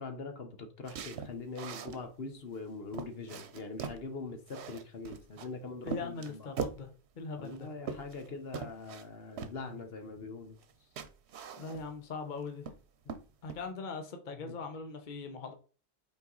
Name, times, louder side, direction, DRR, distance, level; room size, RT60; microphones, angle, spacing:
voice 1, 0.0-6.5 7.4-10.6 14.3-14.5, left 3 dB, 70° left, 6 dB, 1.3 m, -43 dB
sound 1, 0.8-2.0 2.5-2.6 2.9-4.0 4.5-5.5 5.9-6.9 7.4-8.3 8.5-9.0 9.4-9.6 10.6-10.7 11.0-12.0 12.4-12.8 13.1-13.6, right 6 dB, 90° right, 1.0 m, -41 dB
voice 2, 5.8-7.7 11.6-12.7 13.4-15.5, left 4 dB, 50° left, 6 dB, 1.0 m, -41 dB
5.7 x 4.6 x 3.9 m, 0.38 s
omnidirectional pair, 1.1 m